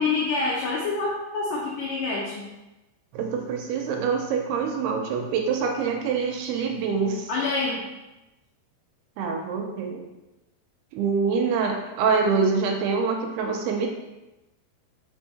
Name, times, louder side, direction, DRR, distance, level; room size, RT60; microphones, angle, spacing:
voice 1, 0.0-2.4 7.3-7.8, left 3 dB, 80° left, -4 dB, 1.9 m, -26 dB
voice 2, 3.1-7.3 9.2-10.1 10.9-13.9, right 5 dB, 85° right, 2 dB, 2.6 m, -25 dB
5.7 x 4.6 x 4.2 m, 1.0 s
omnidirectional pair, 4.8 m